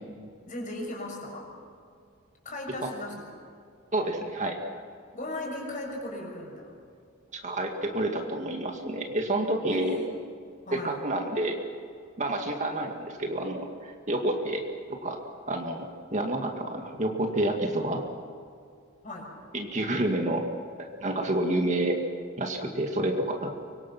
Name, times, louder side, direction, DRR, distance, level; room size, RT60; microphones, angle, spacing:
voice 1, 0.4-1.5 2.4-3.3 5.1-6.7 9.7-10.1 10.7-11.0 19.0-19.3, left 1 dB, 40° left, 0 dB, 6.4 m, -37 dB
voice 2, 3.9-4.6 7.3-10.0 10.7-11.6 12.2-15.2 15.5-15.9 16.1-18.0 19.5-20.5 20.8-22.0 22.4-23.5, right 1 dB, 35° right, 3 dB, 2.1 m, -29 dB
25.0 x 24.0 x 6.1 m, 2.3 s
head